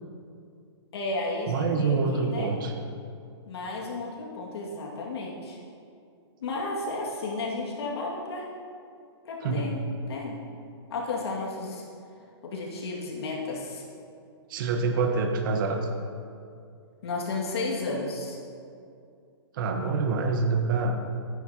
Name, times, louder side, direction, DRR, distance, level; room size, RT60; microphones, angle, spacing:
voice 1, 0.9-2.5 3.5-5.6 6.4-8.5 9.2-9.8 10.1-10.4 10.9-11.8 12.4-13.8 17.0-18.4, left 3 dB, 65° left, -3 dB, 2.0 m, -33 dB
voice 2, 1.5-2.7 9.4-9.7 14.5-15.9 19.5-21.0, right 4 dB, 50° right, 4 dB, 1.1 m, -26 dB
13.5 x 9.8 x 2.9 m, 2.4 s
hypercardioid pair, 145°, 14 cm